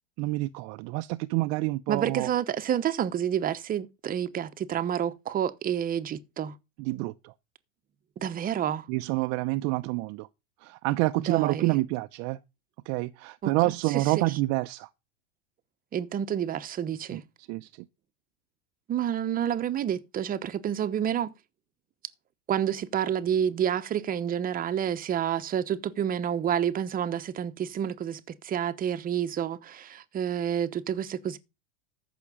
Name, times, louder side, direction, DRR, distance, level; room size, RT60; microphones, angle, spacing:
voice 1, 0.2-2.3 6.8-7.3 8.9-10.3 10.6-12.4 12.9-14.9 17.1-17.2 17.5-17.7, right 20 dB, 45° right, 0.6 m, -28 dB
voice 2, 1.9-6.6 8.2-8.9 11.2-11.8 13.4-13.5 13.9-14.4 15.9-17.2 18.9-21.3 22.5-31.4, right 9 dB, 25° right, 1.0 m, -29 dB
14.0 x 6.0 x 5.1 m
hypercardioid pair, 120°, 36 cm